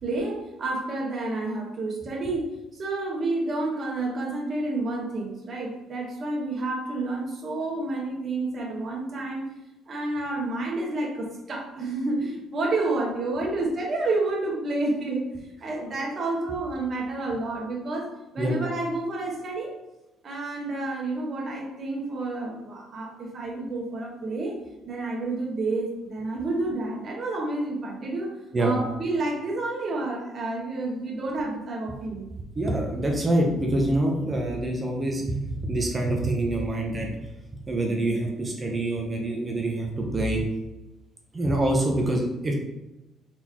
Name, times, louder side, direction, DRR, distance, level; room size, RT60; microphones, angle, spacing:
voice 1, 0.0-9.5 9.9-15.3 15.6-19.7 20.2-24.6 24.8-32.3, right 2 dB, 45° right, -2 dB, 1.3 m, -29 dB
voice 2, 32.6-37.1 37.7-40.4 41.3-42.5, right 1 dB, 25° right, 1 dB, 0.8 m, -25 dB
4.3 x 3.5 x 3.0 m, 0.99 s
cardioid pair, 100°, 0 cm